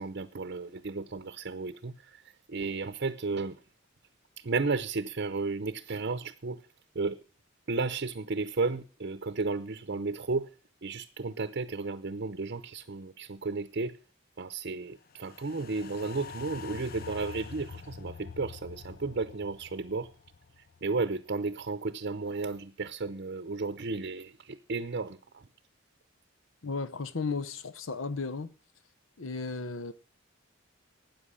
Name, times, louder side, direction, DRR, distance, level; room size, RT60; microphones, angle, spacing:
voice 1, 0.0-2.2 2.5-3.6 4.4-6.6 6.9-7.2 7.7-10.5 10.8-14.0 14.4-20.1 20.8-25.5, right 3 dB, 55° right, 0.7 m, -33 dB
sound 1, 15.1-21.5 21.9-22.0, left 5 dB, 50° left, 0.6 m, -46 dB
voice 2, 26.6-28.5 29.2-29.9, left 4 dB, 75° left, 0.9 m, -34 dB
13.0 x 9.2 x 6.4 m
head